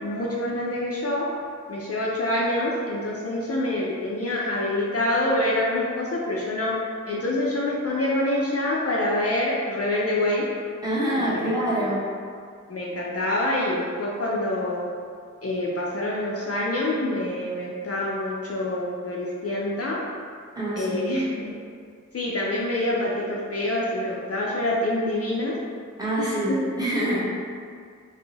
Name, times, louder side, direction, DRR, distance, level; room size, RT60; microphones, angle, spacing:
voice 1, 0.0-1.3 1.7-6.8 7.1-10.4 11.2-11.9 12.7-14.9 15.4-20.0 20.8-21.5 22.1-25.6 26.2-26.6, left 1 dB, 50° left, -4 dB, 0.4 m, -26 dB
voice 2, 10.8-12.0 20.6-21.2 26.0-27.2, right 1 dB, 15° right, -9 dB, 0.9 m, -26 dB
2.7 x 2.0 x 3.8 m, 2.2 s
wide cardioid pair, 70°, 31 cm